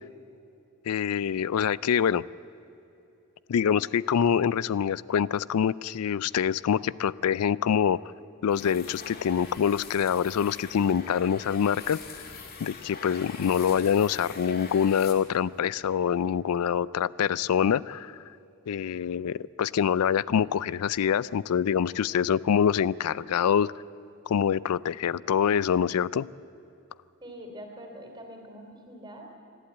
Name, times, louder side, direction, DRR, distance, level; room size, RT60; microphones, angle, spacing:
voice 1, 0.9-2.2 3.5-8.0 8.4-12.0 12.6-18.2 18.7-23.7 24.3-26.3, left 8 dB, 85° left, 21 dB, 0.4 m, -25 dB
sound 1, 8.5-15.6, left 4 dB, 45° left, 2.1 m, -44 dB
voice 2, 27.2-29.3, equal, 20° right, 2 dB, 3.1 m, -44 dB
26.0 x 11.5 x 9.1 m, 2.8 s
head